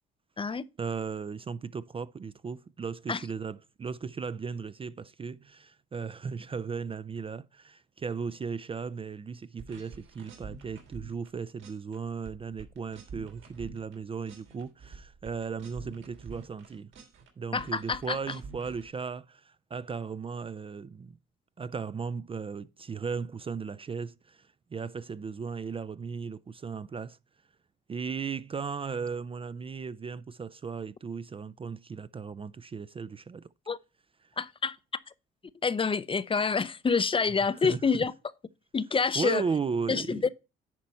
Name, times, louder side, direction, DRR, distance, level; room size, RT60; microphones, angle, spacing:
voice 1, 0.8-16.9 17.4-21.2 21.6-27.2 27.9-33.5 37.6-38.0 39.2-40.3, right 5 dB, 30° right, 0.4 m, -36 dB
sound 1, 9.6-11.3 11.6-12.0 12.3-14.0 14.3-17.3 17.5-18.9, right 4 dB, 75° right, 3.1 m, -47 dB
voice 2, 17.5-18.4 33.7-33.8 34.4-34.8 35.6-38.1 38.7-39.4 39.9-40.3, left 5 dB, 25° left, 0.6 m, -27 dB
10.5 x 4.2 x 5.4 m
cardioid pair, 90°, 20 cm